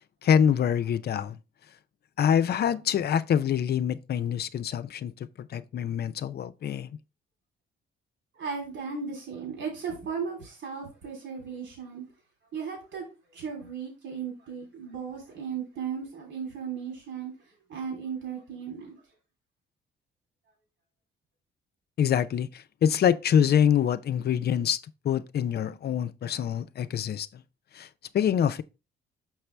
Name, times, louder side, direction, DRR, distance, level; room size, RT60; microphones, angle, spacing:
voice 1, 0.2-1.4 2.2-5.1 5.4-6.9 22.0-24.8 25.0-27.4 27.7-27.9 28.1-28.6, left 8 dB, 55° left, 0.6 m, -25 dB
voice 2, 8.4-12.0 12.5-13.0 13.3-17.3 17.7-18.9, right 6 dB, 70° right, 3.4 m, -36 dB
6.0 x 5.9 x 3.3 m
cardioid pair, 90°, 20 cm